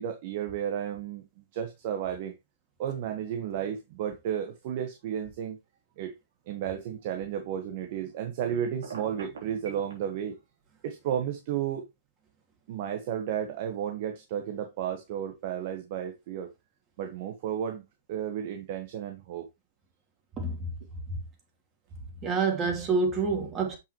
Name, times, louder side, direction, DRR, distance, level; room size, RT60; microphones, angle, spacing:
voice 1, 0.0-2.3 2.8-5.6 6.0-6.1 6.5-10.3 10.8-11.9 12.7-16.5 17.0-17.8 18.1-19.5, right 9 dB, 50° right, 1.5 m, -33 dB
Telephone, 8.8-9.9, right 5 dB, 80° right, 3.7 m, -41 dB
voice 2, 20.4-20.7 21.1-21.2 22.2-23.8, right 4 dB, 25° right, 3.3 m, -27 dB
7.9 x 6.1 x 3.1 m
hypercardioid pair, 130°, 0 cm